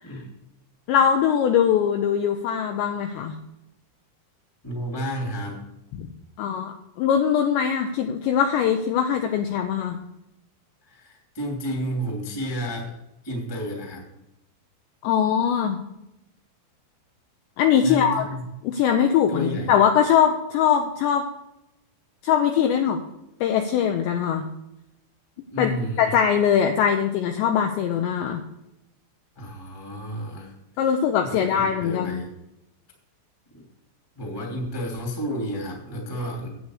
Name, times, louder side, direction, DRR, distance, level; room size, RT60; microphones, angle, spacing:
voice 1, 0.9-3.4 6.0-6.1 6.4-10.0 15.0-15.8 17.6-18.3 18.6-21.3 22.2-23.0 23.4-24.5 25.6-25.7 26.0-28.4 30.8-32.2, left 8 dB, 85° left, 5 dB, 2.6 m, -21 dB
voice 2, 4.6-5.6 10.9-12.9 13.2-14.0 17.8-18.4 19.3-19.7 25.5-26.1 29.3-30.5 30.8-32.3 33.5-33.6 34.1-36.5, equal, 15° left, -1 dB, 1.0 m, -31 dB
9.5 x 8.3 x 6.5 m, 0.88 s
omnidirectional pair, 5.9 m